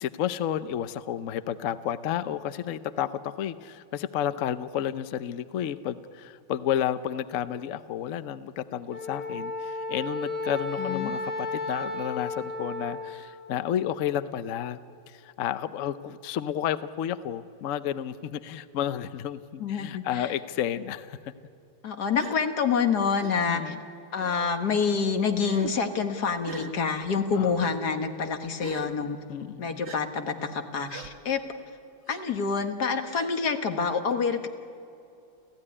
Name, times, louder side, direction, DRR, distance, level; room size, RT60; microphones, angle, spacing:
voice 1, 0.0-14.8 15.1-21.3 23.5-23.8 27.3-27.5 29.3-29.8, left 10 dB, 75° left, 13 dB, 0.7 m, -31 dB
Wind instrument woodwind instrument, 8.9-13.3, left 3 dB, 25° left, 4.4 m, -33 dB
voice 2, 10.8-11.1 19.6-20.3 21.8-23.8 24.1-29.2 29.6-31.4 32.1-34.5, left 5 dB, 55° left, 6 dB, 2.0 m, -27 dB
Gasp, 22.2-22.4 23.2-23.3 24.2-24.6 25.4-25.7 26.4-26.7 27.6-27.7 28.6-28.9 29.8-30.0 30.9-31.1 32.1-32.2 33.1-33.3, right 3 dB, 35° right, 1.4 m, -40 dB
30.0 x 15.5 x 9.8 m, 2.7 s
omnidirectional pair, 2.2 m